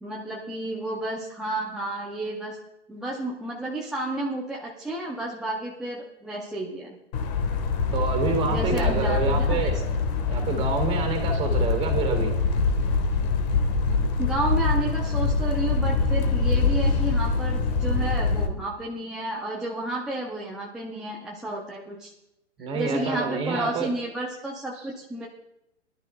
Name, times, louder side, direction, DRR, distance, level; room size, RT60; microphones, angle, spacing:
voice 1, 0.0-2.6 2.9-7.0 8.4-9.8 14.2-22.1 22.7-25.3, right 1 dB, ahead, -4 dB, 0.5 m, -31 dB
sound 1, 7.1-18.5, left 4 dB, 40° left, 1.4 m, -24 dB
voice 2, 7.9-9.8 10.3-12.3 22.6-23.9, right 4 dB, 15° right, 3 dB, 2.4 m, -27 dB
21.5 x 12.0 x 2.3 m, 0.85 s
hypercardioid pair, 140°, 34 cm